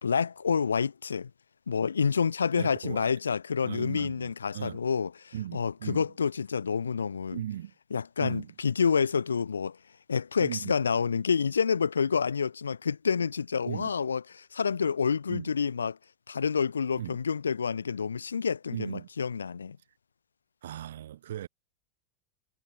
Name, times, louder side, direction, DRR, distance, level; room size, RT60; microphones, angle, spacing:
voice 1, 0.0-1.3 1.7-7.4 7.9-9.8 10.1-16.0 16.3-19.8, left 6 dB, 85° left, 0.6 m, -28 dB
voice 2, 2.6-3.1 3.6-4.8 5.3-6.1 7.3-7.7 8.2-8.5 10.4-10.8 13.7-13.9 15.3-15.5 17.0-17.2 18.7-19.1 20.6-21.5, right 11 dB, 70° right, 4.3 m, -37 dB
figure-of-eight pair, 90°, 0 cm